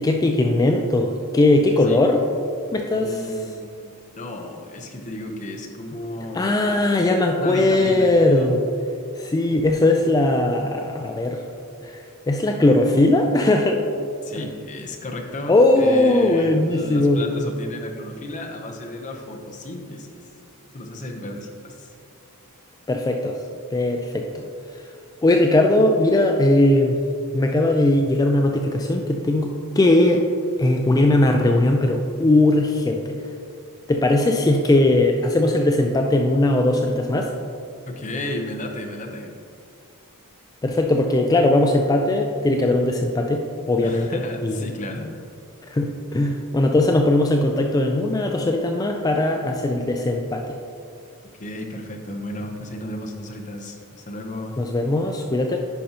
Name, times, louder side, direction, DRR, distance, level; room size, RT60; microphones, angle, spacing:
voice 1, 0.0-2.2 2.7-3.2 6.3-8.6 9.2-11.4 11.8-12.0 12.3-13.8 14.4-14.5 15.5-17.2 22.9-23.4 23.7-24.3 25.2-26.9 27.3-30.2 30.6-33.2 33.9-37.3 40.6-44.1 44.4-44.6 45.7-50.4 54.6-55.6, left 2 dB, 15° left, 2 dB, 0.3 m, -19 dB
voice 2, 2.8-6.9 7.4-8.5 14.2-20.2 20.6-21.9 37.9-39.3 43.8-45.1 51.2-54.5, left 1 dB, 35° left, 1 dB, 0.8 m, -34 dB
10.0 x 5.3 x 2.9 m, 2.4 s
head